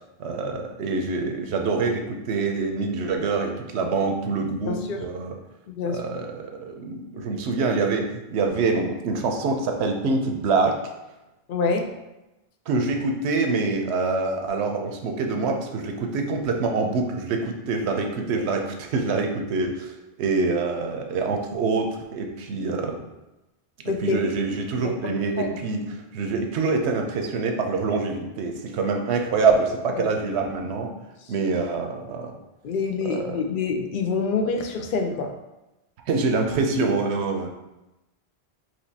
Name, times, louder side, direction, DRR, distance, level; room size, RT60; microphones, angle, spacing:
voice 1, 0.2-5.3 5.8-10.7 12.7-19.9 20.2-23.0 24.0-30.9 31.3-32.4 33.0-33.4 36.1-37.5, right 4 dB, 80° right, 4 dB, 0.9 m, -25 dB
voice 2, 4.7-5.0 5.7-6.0 11.5-11.9 23.9-24.2 25.0-25.5 30.0-30.1 32.6-35.3, left 4 dB, 60° left, 4 dB, 0.6 m, -26 dB
5.1 x 3.0 x 2.7 m, 0.98 s
omnidirectional pair, 1.1 m